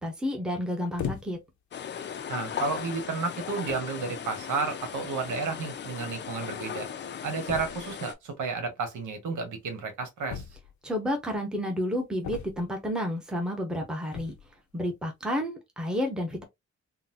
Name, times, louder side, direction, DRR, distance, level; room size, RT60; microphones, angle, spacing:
voice 1, 0.0-1.4 10.8-14.4 14.7-16.4, equal, 5° right, 0.8 m, -30 dB
sound 1, 1.0-1.6 2.4-2.5 3.3-3.4 3.7-4.0 5.2-5.3 5.5-5.6 5.8-5.9 7.5-8.0 10.3-10.9 12.2-12.9 14.0-14.5, left 8 dB, 80° left, 0.6 m, -38 dB
sound 2, 1.7-8.1, left 8 dB, 40° left, 0.4 m, -37 dB
voice 2, 2.3-6.9 7.2-10.4, right 4 dB, 85° right, 1.3 m, -32 dB
3.9 x 2.2 x 2.6 m
wide cardioid pair, 155°, 30 cm